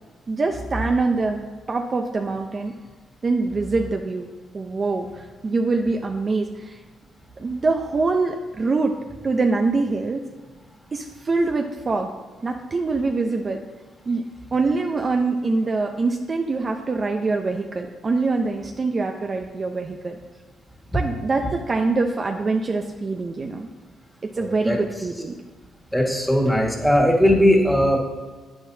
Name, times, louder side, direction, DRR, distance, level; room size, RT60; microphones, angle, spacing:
voice 1, 0.3-2.7 3.2-6.8 7.4-9.0 9.2-10.3 10.9-12.1 12.4-13.6 14.1-14.2 14.5-20.2 20.9-23.7 24.3-25.3, right 3 dB, 35° right, 3 dB, 0.6 m, -24 dB
voice 2, 24.4-24.8 25.9-28.0, equal, ahead, 0 dB, 1.7 m, -18 dB
9.4 x 9.3 x 2.8 m, 1.4 s
cardioid pair, 90°, 0 cm